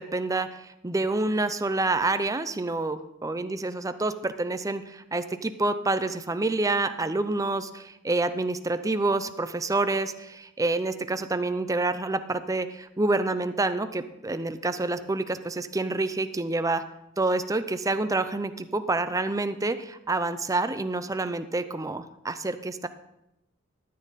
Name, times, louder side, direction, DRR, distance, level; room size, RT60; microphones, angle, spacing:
voice 1, 0.0-16.8 17.2-22.9, right 2 dB, 15° right, 11 dB, 0.5 m, -28 dB
13.5 x 9.6 x 4.1 m, 0.88 s
head